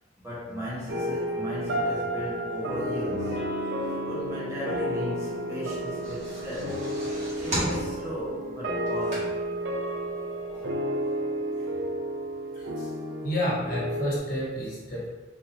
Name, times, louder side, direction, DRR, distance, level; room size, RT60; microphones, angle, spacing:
voice 1, 0.2-3.4 4.0-6.9 7.3-9.5, equal, 15° right, -9 dB, 1.2 m, -36 dB
sound 1, 0.9-14.2, right 1 dB, 65° right, 0.5 m, -32 dB
Electric guitar / Strum, 3.1-8.5, left 1 dB, 75° left, 0.9 m, -39 dB
sound 2, 5.8-9.6 10.1-10.2 10.5-10.6, right 1 dB, 40° right, 1.3 m, -35 dB
voice 2, 12.5-12.9 13.2-15.1, equal, 50° left, -8 dB, 1.3 m, -30 dB
4.1 x 2.6 x 2.8 m, 1.3 s
head